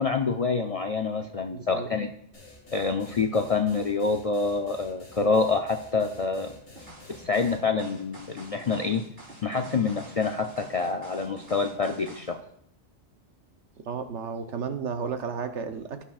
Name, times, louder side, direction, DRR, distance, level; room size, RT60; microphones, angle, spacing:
voice 1, 0.0-2.1 2.7-6.5 7.2-9.0 9.4-12.4, left 4 dB, 50° left, 5 dB, 0.4 m, -27 dB
voice 2, 1.5-1.9 13.8-16.0, right 6 dB, 85° right, 7 dB, 1.2 m, -33 dB
sound 1, 2.3-7.6, left 2 dB, 80° left, 2.4 m, -49 dB
sound 2, 6.8-12.3, right 1 dB, 60° right, 3.4 m, -47 dB
16.5 x 5.9 x 2.4 m, 0.70 s
omnidirectional pair, 1.2 m